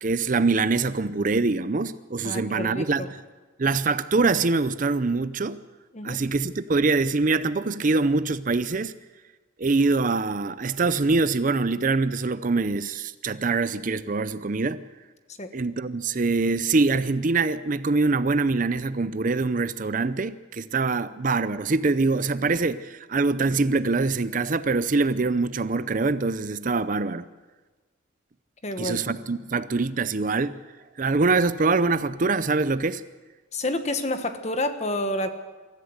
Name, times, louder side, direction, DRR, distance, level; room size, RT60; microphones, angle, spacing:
voice 1, 0.0-3.2 3.6-5.6 6.0-8.9 9.6-14.8 15.5-27.2 28.8-30.5 31.0-33.0, right 3 dB, 40° right, 14 dB, 0.5 m, -24 dB
voice 2, 2.2-3.1 5.9-6.2 15.4-15.5 28.6-29.0 33.5-35.3, left 1 dB, 35° left, 8 dB, 1.4 m, -29 dB
24.0 x 14.0 x 8.0 m, 1.3 s
head